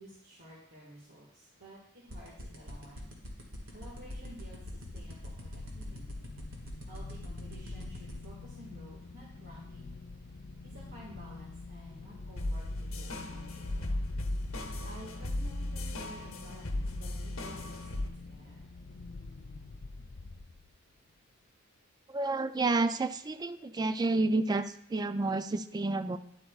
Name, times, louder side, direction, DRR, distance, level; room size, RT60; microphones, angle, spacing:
voice 1, 0.0-1.8 2.0-3.1 3.7-6.0 6.9-10.0 10.6-14.0 14.8-18.0 18.3-18.6, equal, 55° right, -5 dB, 1.7 m, -52 dB
sound 1, 2.1-8.2, equal, 85° right, 1.8 m, -44 dB
sound 2, 3.6-20.9, left 3 dB, 50° left, 0.4 m, -46 dB
sound 3, 12.4-18.1, left 1 dB, 85° left, 0.9 m, -36 dB
voice 2, 22.1-26.2, right 3 dB, 20° right, 11 dB, 0.3 m, -30 dB
10.5 x 8.1 x 2.4 m, 0.72 s
head